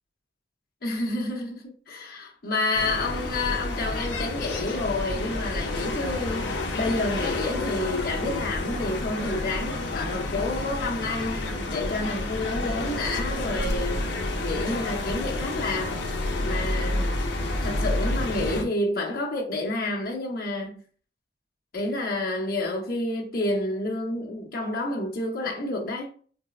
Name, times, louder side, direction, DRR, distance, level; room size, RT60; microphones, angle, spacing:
voice 1, 0.8-17.1 17.6-20.8 21.7-26.1, left 2 dB, 50° left, 0.9 m, -29 dB
sound 1, 2.7-18.6, left 2 dB, 75° left, 0.6 m, -29 dB
4.4 x 2.0 x 2.4 m
head